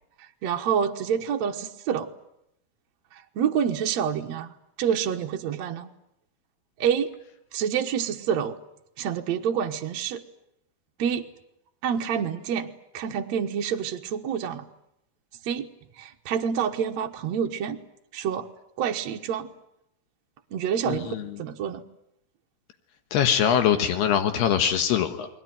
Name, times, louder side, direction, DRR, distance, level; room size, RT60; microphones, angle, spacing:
voice 1, 0.4-2.1 3.1-4.5 4.8-5.9 6.8-7.1 7.5-8.6 9.0-10.2 11.0-11.2 11.8-12.7 12.9-14.6 15.4-15.7 16.0-17.8 18.1-18.5 18.8-19.5 20.5-21.8, right 8 dB, 65° right, 3 dB, 1.8 m, -27 dB
voice 2, 20.9-21.3 23.1-25.3, left 9 dB, 75° left, 8 dB, 3.4 m, -23 dB
29.5 x 21.5 x 9.3 m, 0.81 s
omnidirectional pair, 4.7 m